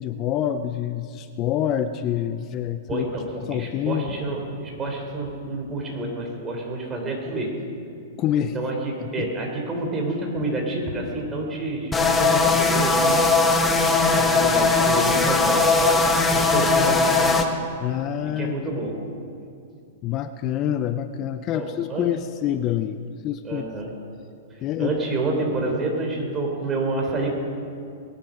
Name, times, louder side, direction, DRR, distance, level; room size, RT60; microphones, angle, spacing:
voice 1, 0.0-3.1 3.4-4.1 8.2-8.6 9.0-9.3 17.8-18.7 20.0-23.6 24.6-25.0, left 10 dB, 35° left, 10 dB, 0.6 m, -27 dB
voice 2, 2.9-7.5 8.5-13.2 14.2-16.0 16.3-17.4 18.2-19.0 21.5-22.1 23.4-23.9 24.5-27.3, right 2 dB, 20° right, 0 dB, 3.8 m, -28 dB
sound 1, 11.9-17.4, left 3 dB, 10° left, 1.3 m, -19 dB
21.0 x 11.5 x 5.3 m, 2.4 s
hypercardioid pair, 130°, 0 cm